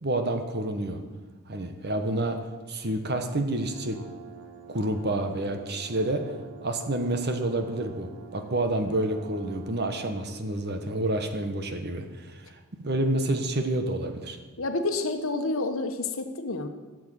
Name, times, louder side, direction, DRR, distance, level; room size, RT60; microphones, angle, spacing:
voice 1, 0.0-1.0 1.5-2.4 2.7-4.0 4.7-6.3 6.6-12.4 12.8-14.4, right 1 dB, 50° right, 7 dB, 1.3 m, -28 dB
sound 1, 3.5-10.3, right 5 dB, 65° right, 1.5 m, -47 dB
voice 2, 14.6-16.7, left 2 dB, 70° left, 7 dB, 1.2 m, -29 dB
13.5 x 7.6 x 7.7 m, 1.3 s
head